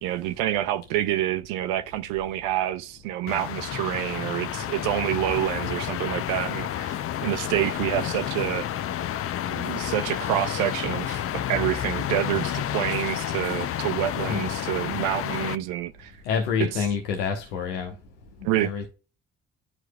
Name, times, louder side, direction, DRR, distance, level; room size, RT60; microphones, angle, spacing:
voice 1, 0.0-8.7 9.5-16.1 18.4-18.7, right 13 dB, 65° right, 0.6 m, -27 dB
sound 1, 3.3-15.6, left 11 dB, 40° left, 0.5 m, -30 dB
voice 2, 16.3-17.9 18.4-18.9, left 6 dB, 75° left, 1.0 m, -27 dB
10.5 x 4.5 x 2.2 m
figure-of-eight pair, 40°, 36 cm